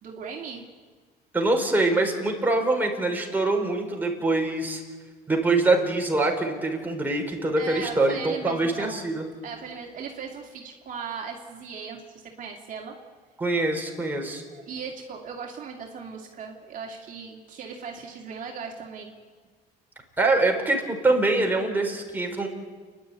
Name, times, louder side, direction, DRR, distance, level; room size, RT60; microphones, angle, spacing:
voice 1, 0.0-0.7 7.5-9.0 9.4-12.9 14.5-19.1, right 5 dB, 50° right, 0 dB, 2.4 m, -38 dB
voice 2, 1.3-4.8 5.3-9.2 13.4-14.4 20.2-22.5, right 2 dB, 10° right, 1 dB, 4.5 m, -24 dB
29.5 x 11.0 x 9.4 m, 1.5 s
cardioid pair, 110°, 17 cm